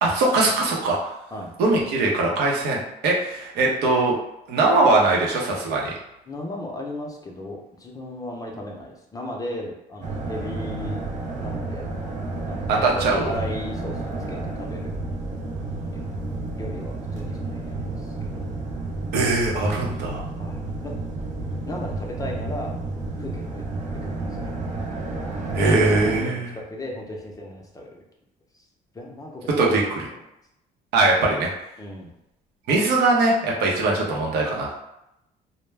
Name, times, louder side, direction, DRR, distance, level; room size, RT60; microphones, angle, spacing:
voice 1, 0.0-1.1 1.6-4.2 4.5-6.0 12.7-13.3 19.1-20.2 25.5-26.5 29.6-29.8 30.9-31.5 32.7-34.7, right 2 dB, 85° right, -2 dB, 0.7 m, -21 dB
voice 2, 6.3-11.1 11.4-11.9 12.4-12.8 13.1-14.9 15.9-16.1 16.5-18.5 20.4-20.9 21.7-22.8 23.2-23.6 24.0-24.5 26.2-28.0 28.9-29.8 31.8-32.1, left 1 dB, 20° left, 0 dB, 0.5 m, -36 dB
sound 1, 10.0-26.2, right 2 dB, 45° right, 0.5 m, -31 dB
2.2 x 2.0 x 3.2 m, 0.85 s
cardioid pair, 110°, 17 cm